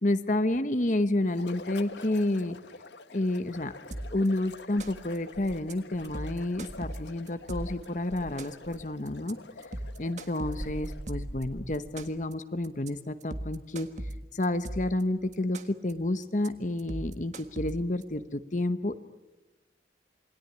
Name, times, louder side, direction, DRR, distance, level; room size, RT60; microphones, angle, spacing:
voice 1, 0.0-2.6 3.1-3.7 4.1-9.4 10.0-13.9 14.3-15.6 15.8-18.9, left 1 dB, 45° left, 10 dB, 1.0 m, -30 dB
sound 1, 1.3-11.2, left 3 dB, 80° left, 1.5 m, -48 dB
sound 2, 3.9-4.3 4.6-5.2 5.5-5.7 6.0-7.9 8.2-8.7 9.1-9.3 9.6-11.4 11.7-12.3 12.6-12.9 13.2-15.0 15.3-15.9 16.2-16.5 16.8-18.0, right 1 dB, 40° right, 1.7 m, -38 dB
Insect, 4.8-7.0 7.5-8.9 10.6-12.3, right 1 dB, 15° right, 0.8 m, -44 dB
28.0 x 21.5 x 9.6 m, 1.1 s
head